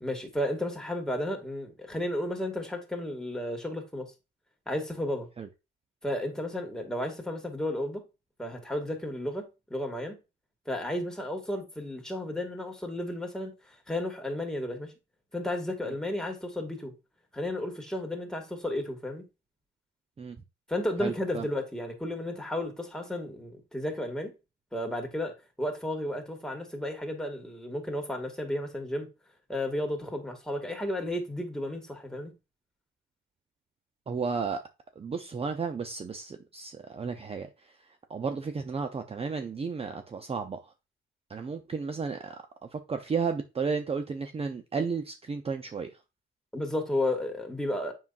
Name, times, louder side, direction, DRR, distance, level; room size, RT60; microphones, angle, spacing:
voice 1, 0.0-4.1 4.7-5.3 6.0-8.0 8.4-10.2 10.7-13.5 13.9-14.9 15.3-16.9 17.3-19.2 20.7-24.3 24.7-29.1 29.5-32.3 46.5-47.9, left 1 dB, 5° left, 2.0 m, -33 dB
voice 2, 21.0-21.5 34.1-34.6 35.0-37.5 38.1-40.6 41.3-42.4 42.7-45.9, right 5 dB, 30° right, 0.7 m, -33 dB
7.2 x 5.6 x 2.5 m
cardioid pair, 90°, 20 cm